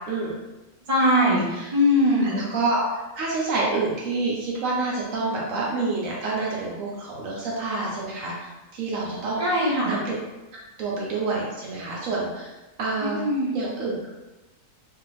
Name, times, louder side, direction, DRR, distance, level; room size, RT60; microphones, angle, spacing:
voice 1, 0.9-1.4 1.7-2.4 9.4-9.9 13.0-13.6, left 1 dB, 35° right, -6 dB, 0.7 m, -21 dB
voice 2, 2.2-2.8 3.2-10.1 10.8-13.2 13.5-14.1, right 3 dB, 70° right, -4 dB, 0.9 m, -28 dB
2.6 x 2.4 x 3.0 m, 1.1 s
omnidirectional pair, 1.6 m